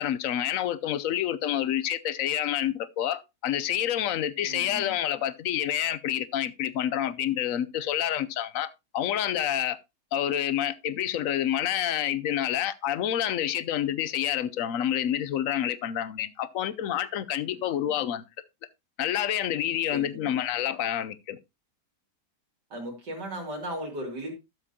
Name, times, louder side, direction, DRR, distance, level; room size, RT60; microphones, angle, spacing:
voice 1, 0.0-9.8 10.1-18.2 19.0-21.4, left 11 dB, 65° left, 0.9 m, -28 dB
voice 2, 4.5-4.9 17.5-18.0 19.9-20.4 22.7-24.3, right 1 dB, 80° right, 3.4 m, -37 dB
12.5 x 7.4 x 2.8 m
omnidirectional pair, 1.8 m